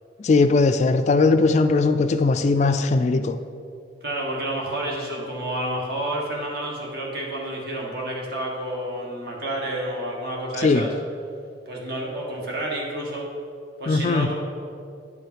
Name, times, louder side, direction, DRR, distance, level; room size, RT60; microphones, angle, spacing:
voice 1, 0.2-3.4 10.6-10.8 13.9-14.3, left 3 dB, 40° left, 9 dB, 0.3 m, -19 dB
voice 2, 4.0-10.9 11.7-13.3 13.8-14.3, right 1 dB, 55° right, -2 dB, 1.6 m, -30 dB
9.9 x 5.0 x 4.6 m, 2.4 s
head